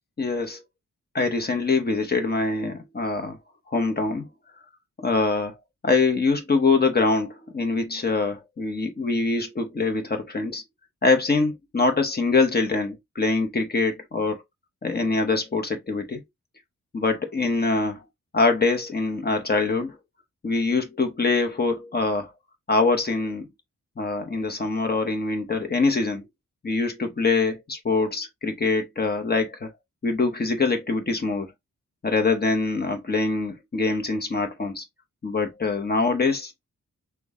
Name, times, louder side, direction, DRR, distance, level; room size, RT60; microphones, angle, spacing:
voice 1, 0.2-0.6 1.1-3.4 3.7-4.3 5.0-5.6 5.8-10.6 11.0-14.4 14.8-16.2 16.9-18.0 18.3-19.9 20.4-22.3 22.7-23.5 24.0-26.2 26.6-29.7 30.0-31.5 32.0-34.8 35.2-36.5, left 3 dB, 30° left, 1.0 m, -24 dB
6.0 x 2.3 x 3.6 m
wide cardioid pair, 135°, 31 cm